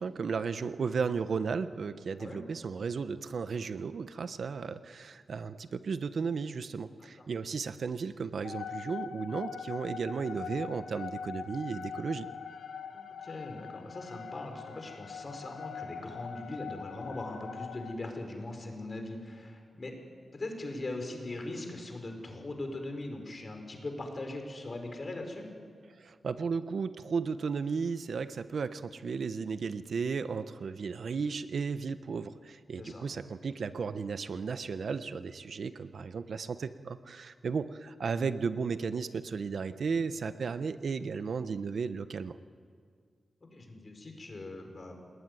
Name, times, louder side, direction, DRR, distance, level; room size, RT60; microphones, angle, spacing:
voice 1, 0.0-12.3 25.9-42.4, right 5 dB, 70° right, 12 dB, 1.0 m, -34 dB
sound 1, 8.4-17.9, left 7 dB, 85° left, 1.0 m, -42 dB
voice 2, 12.9-19.9 20.3-25.5 32.8-33.1 43.5-45.0, left 2 dB, 40° left, 4 dB, 5.2 m, -40 dB
29.0 x 19.5 x 9.8 m, 2.1 s
wide cardioid pair, 90°, 0 cm